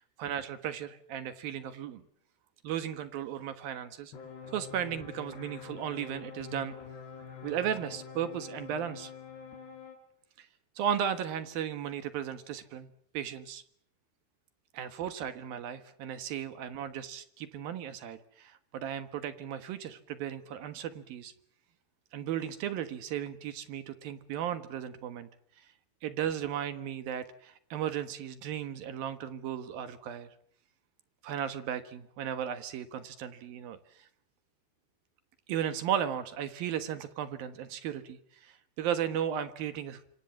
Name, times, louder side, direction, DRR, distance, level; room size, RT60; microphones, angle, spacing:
voice 1, 0.0-2.0 2.6-4.1 4.5-6.7 7.4-9.1 10.4-10.5 10.8-12.9 13.1-13.6 14.7-21.3 22.1-25.3 26.0-30.3 31.2-34.1 35.5-40.0, right 9 dB, 65° right, 11 dB, 3.0 m, -35 dB
sound 1, 4.1-10.0, left 6 dB, 85° left, 5.8 m, -46 dB
26.5 x 26.0 x 7.2 m, 0.65 s
omnidirectional pair, 4.8 m